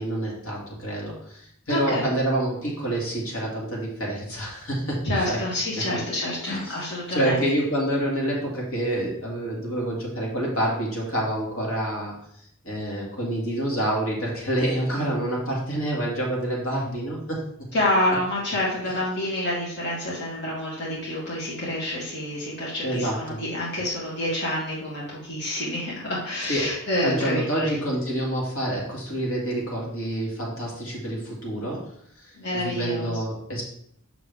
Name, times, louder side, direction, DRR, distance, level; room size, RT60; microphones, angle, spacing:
voice 1, 0.0-5.4 6.4-6.8 7.1-12.1 12.6-17.4 22.8-23.4 26.5-26.7 27.0-31.8 32.2-33.6, right 1 dB, 75° left, -3 dB, 2.2 m, -27 dB
voice 2, 1.7-2.1 5.0-7.4 17.7-27.8 32.4-33.2, left 1 dB, 50° left, -6 dB, 1.8 m, -28 dB
6.8 x 6.1 x 3.5 m, 0.68 s
head